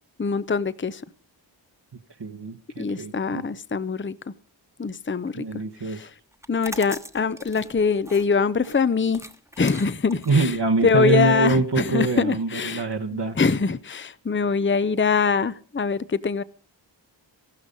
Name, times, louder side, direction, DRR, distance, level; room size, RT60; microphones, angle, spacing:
voice 1, 0.2-1.0 2.8-4.1 4.8-5.4 5.9-6.1 6.5-9.2 9.6-10.5 10.8-12.8 13.1-16.4, left 5 dB, 25° left, 0.6 m, -23 dB
voice 2, 1.9-3.4 5.4-6.1 10.2-13.4, right 3 dB, 65° right, 1.4 m, -24 dB
sound 1, 6.3-12.1, right 1 dB, 5° right, 1.2 m, -42 dB
15.5 x 12.5 x 5.3 m
wide cardioid pair, 55°, 45 cm